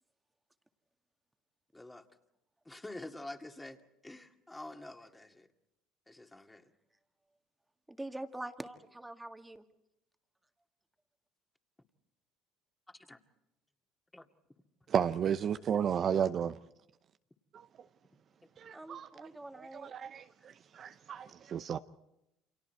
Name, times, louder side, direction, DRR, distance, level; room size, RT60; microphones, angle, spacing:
voice 1, 1.7-2.0 2.7-5.5 6.1-6.6 12.9-13.2 14.1-14.3, left 2 dB, 10° left, 2.2 m, -47 dB
voice 2, 7.9-9.6 18.7-19.9, right 1 dB, 10° right, 1.9 m, -44 dB
voice 3, 14.9-16.6 17.5-17.7 18.6-19.3 19.5-21.8, right 8 dB, 45° right, 0.7 m, -33 dB
29.5 x 26.5 x 4.6 m
hypercardioid pair, 70°, 0 cm